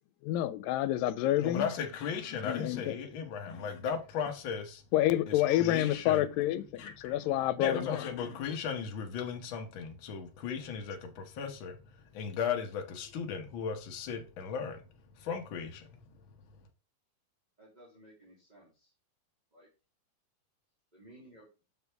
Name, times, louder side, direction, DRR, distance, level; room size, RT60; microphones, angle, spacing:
voice 1, 0.2-1.7 2.4-3.0 4.9-8.0, left 13 dB, 85° left, 2.3 m, -28 dB
voice 2, 1.4-4.8 5.3-6.3 6.8-7.1 7.6-11.8 12.1-14.8 15.2-15.9, left 6 dB, 60° left, 1.3 m, -36 dB
voice 3, 17.6-18.9 19.5-19.7 20.9-21.5, right 1 dB, 15° right, 2.1 m, -57 dB
6.6 x 6.3 x 3.5 m
omnidirectional pair, 3.9 m